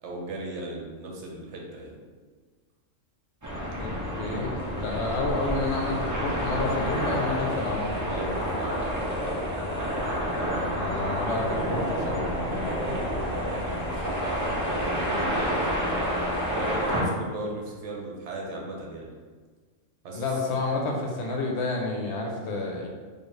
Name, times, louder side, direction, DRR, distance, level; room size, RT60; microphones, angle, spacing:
voice 1, 0.0-2.0 8.1-8.8 13.7-16.0 16.5-19.1 20.0-20.3, right 2 dB, 65° right, -2 dB, 1.0 m, -37 dB
sound 1, 3.4-17.0, equal, 20° right, 0.6 m, -29 dB
voice 2, 3.8-7.9 10.7-12.2 20.1-22.9, left 2 dB, 65° left, 0 dB, 0.9 m, -30 dB
sound 2, 11.3-14.2, equal, 25° left, 1.1 m, -35 dB
4.4 x 2.5 x 3.1 m, 1.5 s
omnidirectional pair, 1.3 m